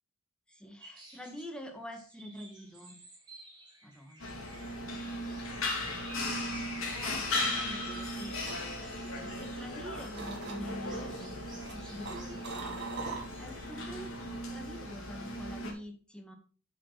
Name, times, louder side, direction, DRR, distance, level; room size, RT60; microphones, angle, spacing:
voice 1, 0.5-3.0 3.8-4.5 6.9-8.3 9.2-12.8 13.4-16.3, equal, 5° left, 3 dB, 2.1 m, -46 dB
sound 1, 0.8-1.5 1.9-10.3 10.7-14.4, right 1 dB, 20° right, 3.8 m, -53 dB
sound 2, 4.2-15.7, left 1 dB, 65° left, 3.5 m, -37 dB
sound 3, 7.9-9.8 10.1-10.9 11.4-13.7 14.0-14.3, right 3 dB, 50° right, 3.2 m, -42 dB
8.6 x 7.8 x 4.2 m, 0.39 s
head